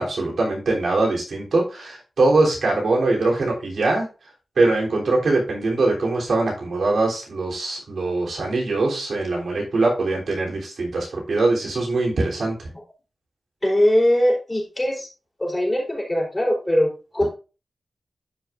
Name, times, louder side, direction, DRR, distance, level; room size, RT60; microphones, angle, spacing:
voice 1, 0.0-4.1 4.6-12.7, right 2 dB, 75° right, -2 dB, 3.3 m, -22 dB
voice 2, 13.6-15.1 15.4-17.3, equal, 20° left, -1 dB, 4.0 m, -21 dB
12.0 x 5.4 x 2.5 m, 0.32 s
cardioid pair, 65°, 0 cm